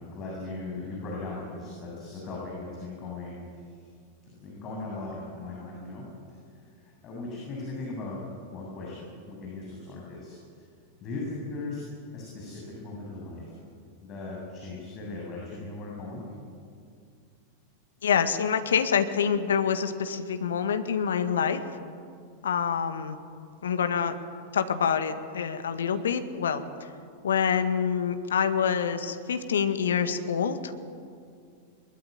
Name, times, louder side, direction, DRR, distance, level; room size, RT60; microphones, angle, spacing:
voice 1, 0.0-3.4 4.4-6.1 6.8-8.3 8.5-10.6 11.0-11.8 12.1-13.6 14.0-16.2, left 3 dB, 30° left, -3 dB, 7.5 m, -38 dB
voice 2, 18.0-21.6 22.4-23.2 23.6-24.2 24.5-26.6 27.2-30.7, left 7 dB, 65° left, 9 dB, 1.8 m, -26 dB
22.0 x 21.5 x 9.7 m, 2.3 s
figure-of-eight pair, 90°, 0 cm